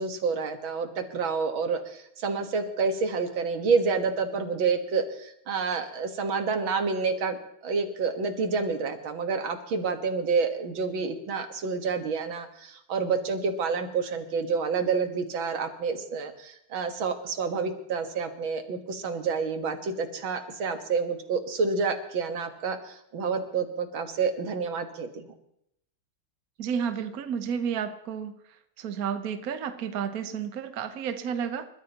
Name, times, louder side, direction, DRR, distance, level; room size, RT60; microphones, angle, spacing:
voice 1, 0.0-25.3, right 5 dB, 70° right, 6 dB, 2.2 m, -29 dB
voice 2, 26.6-28.3 28.8-31.6, right 7 dB, 55° right, 8 dB, 1.2 m, -31 dB
29.0 x 14.0 x 2.9 m, 0.75 s
omnidirectional pair, 2.3 m